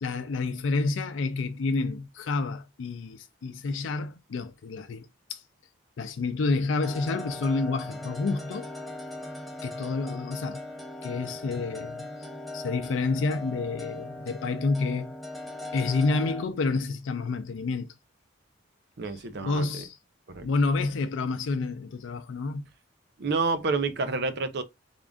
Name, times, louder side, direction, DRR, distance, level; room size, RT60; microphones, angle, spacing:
voice 1, 0.0-5.4 6.0-8.7 9.6-10.6 11.0-12.1 12.5-15.1 15.7-17.9 19.1-20.0 20.4-22.7, left 3 dB, 75° left, 0.4 m, -29 dB
sound 1, 6.8-16.4, left 2 dB, ahead, 0.5 m, -39 dB
voice 2, 19.0-19.8 20.3-20.5 23.2-24.6, right 4 dB, 55° right, 0.6 m, -29 dB
3.6 x 2.4 x 3.5 m
head